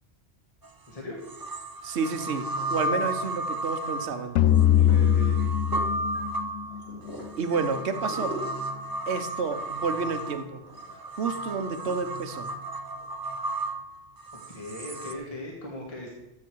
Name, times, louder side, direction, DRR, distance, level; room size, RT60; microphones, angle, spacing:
sound 1, 0.6-0.7 1.3-15.1, right 1 dB, 25° right, 0.5 m, -33 dB
voice 1, 0.9-1.2 4.8-5.4 14.3-16.1, left 1 dB, 30° left, -1 dB, 1.8 m, -38 dB
sound 2, 1.2-1.9 2.4-3.3 3.7-13.7, equal, 60° left, 2.5 m, -45 dB
voice 2, 1.8-4.4 7.4-8.4 9.1-10.6 11.1-12.5, right 5 dB, 75° right, 9 dB, 1.2 m, -30 dB
sound 3, 4.4-7.6, left 10 dB, 85° left, 0.9 m, -22 dB
14.5 x 6.5 x 4.6 m, 0.94 s
omnidirectional pair, 1.2 m